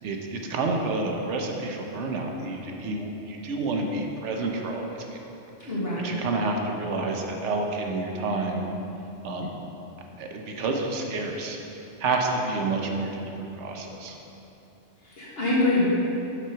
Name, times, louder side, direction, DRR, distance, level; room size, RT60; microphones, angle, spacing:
voice 1, 0.0-5.2 5.6-5.7 6.0-8.6 9.2-9.5 10.2-11.6 12.0-14.2, right 3 dB, 75° right, 2 dB, 1.0 m, -29 dB
voice 2, 5.6-6.2 15.0-15.9, left 2 dB, 55° left, -7 dB, 1.6 m, -25 dB
6.0 x 4.3 x 5.7 m, 2.8 s
omnidirectional pair, 1.2 m